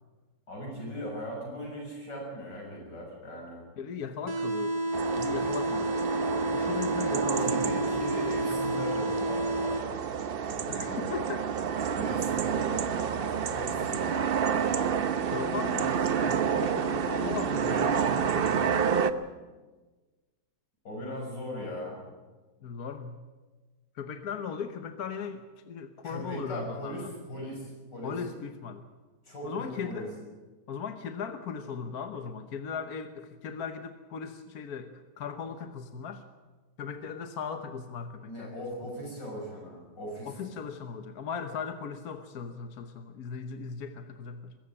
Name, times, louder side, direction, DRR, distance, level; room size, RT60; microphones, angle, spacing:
voice 1, 0.5-3.7 7.4-10.0 10.4-11.2 11.9-15.3 20.8-22.0 26.0-28.1 29.3-30.1 38.3-40.4, equal, 90° left, -1 dB, 7.1 m, -39 dB
voice 2, 3.8-6.0 6.5-7.6 10.7-11.4 15.3-18.7 22.6-23.2 24.0-27.1 28.0-28.9 29.4-30.2 30.7-36.2 36.8-38.5 40.2-44.6, left 6 dB, 60° left, 8 dB, 1.5 m, -38 dB
sound 1, 4.3-10.2, right 1 dB, 25° right, 1.2 m, -31 dB
sound 2, 4.9-19.1, right 7 dB, 55° right, 0.6 m, -29 dB
22.5 x 14.0 x 8.7 m, 1.3 s
omnidirectional pair, 1.9 m